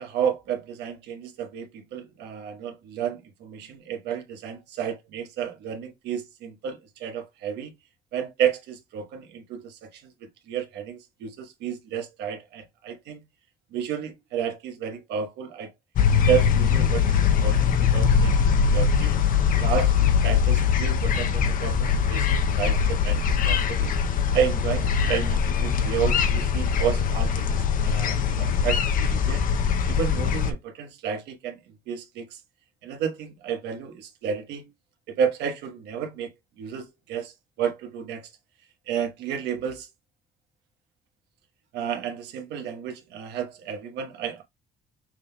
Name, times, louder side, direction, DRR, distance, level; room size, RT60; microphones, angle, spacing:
voice 1, 0.0-7.7 8.1-10.1 10.5-13.2 13.7-15.7 16.2-18.4 18.7-19.1 19.6-19.9 20.2-23.9 24.3-31.6 31.9-32.4 32.8-34.6 35.1-36.3 36.6-38.3 38.9-39.9 41.7-44.4, right 8 dB, 80° right, 1.2 m, -31 dB
sound 1, 16.0-30.5, left 6 dB, 55° left, 0.7 m, -22 dB
6.1 x 3.7 x 2.2 m
cardioid pair, 110°, 17 cm